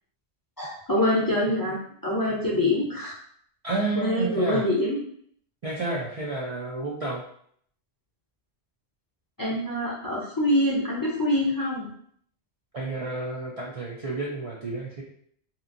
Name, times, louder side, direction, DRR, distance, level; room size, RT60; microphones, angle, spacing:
voice 1, 0.6-3.2 3.9-5.0 9.4-11.9, left 1 dB, 25° left, -5 dB, 0.5 m, -25 dB
voice 2, 3.6-4.6 5.6-7.2 12.7-15.0, right 2 dB, 50° right, -4 dB, 0.4 m, -30 dB
2.9 x 2.5 x 2.5 m, 0.63 s
omnidirectional pair, 1.1 m